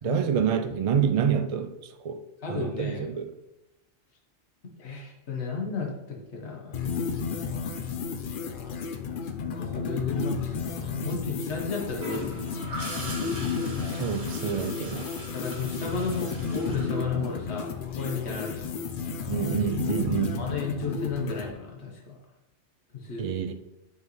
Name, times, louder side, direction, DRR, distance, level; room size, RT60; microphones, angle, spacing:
voice 1, 0.0-2.2 2.5-3.3 13.9-15.1 19.3-20.4 23.2-23.5, right 8 dB, 60° right, 0.3 m, -27 dB
voice 2, 2.4-3.0 4.8-6.8 9.2-12.4 15.3-18.7 20.4-22.2 22.9-23.3, left 4 dB, 75° left, 1.5 m, -34 dB
sound 1, 6.7-21.5, left 5 dB, 55° left, 0.7 m, -32 dB
Gurgling / Toilet flush, 12.0-17.7 19.7-20.0, equal, 45° right, 1.6 m, -40 dB
8.1 x 5.2 x 3.1 m
omnidirectional pair, 1.1 m